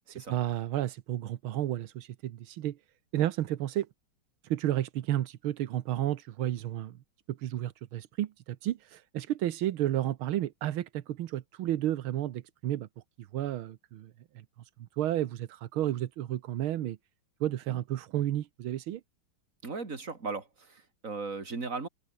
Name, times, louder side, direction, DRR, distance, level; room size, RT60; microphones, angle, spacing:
voice 1, 0.1-2.8 3.1-3.9 4.4-7.0 7.3-12.9 13.2-14.5 15.0-17.0 17.4-19.0, right 12 dB, 85° right, 1.8 m, -32 dB
voice 2, 19.6-21.9, right 4 dB, 40° right, 3.6 m, -37 dB
omnidirectional pair, 2.2 m